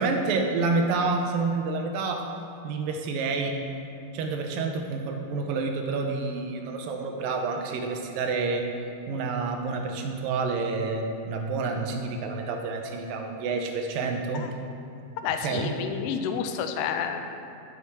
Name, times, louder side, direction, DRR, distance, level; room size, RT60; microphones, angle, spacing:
voice 1, 0.0-2.3 2.6-3.6 4.1-8.7 9.1-14.5 15.4-15.7, right 4 dB, 80° right, 3 dB, 2.3 m, -28 dB
voice 2, 15.2-17.3, left 7 dB, 85° left, 6 dB, 1.8 m, -29 dB
12.5 x 5.7 x 4.6 m, 2.7 s
omnidirectional pair, 4.3 m